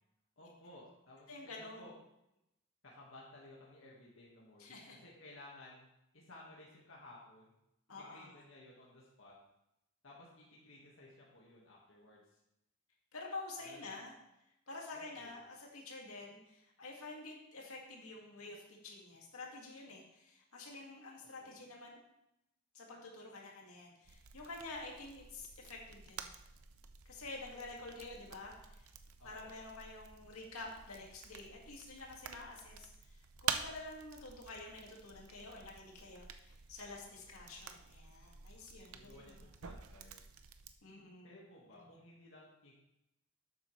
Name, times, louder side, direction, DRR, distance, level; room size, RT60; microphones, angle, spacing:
voice 1, 0.4-1.9 2.8-5.9 6.1-7.5 7.9-9.3 10.0-12.4 13.6-13.9 14.9-15.4 21.2-21.5 29.2-29.6 37.0-37.3 38.8-40.2 41.2-42.7, left 1 dB, 70° left, -4 dB, 1.8 m, -57 dB
voice 2, 1.3-1.9 4.6-5.0 7.9-8.4 13.1-14.2 14.7-22.0 22.7-26.3 27.1-28.9 29.2-39.4 40.8-41.4 41.7-41.8, left 2 dB, 85° left, -1 dB, 2.2 m, -49 dB
sound 1, 24.0-40.7, right 7 dB, 90° right, 0.7 m, -48 dB
11.5 x 8.2 x 3.3 m, 0.85 s
head